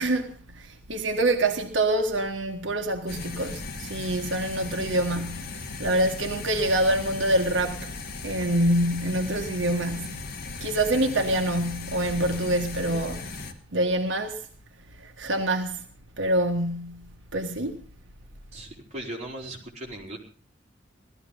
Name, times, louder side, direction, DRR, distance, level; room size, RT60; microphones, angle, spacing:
voice 1, 0.0-10.2 10.6-13.4 13.7-14.5 15.0-15.9 16.2-17.8, right 1 dB, 85° right, 1.6 m, -26 dB
sound 1, 3.1-13.5, left 3 dB, 55° left, 1.9 m, -37 dB
voice 2, 18.5-20.2, right 1 dB, 40° right, 4.5 m, -38 dB
17.5 x 13.5 x 5.4 m
head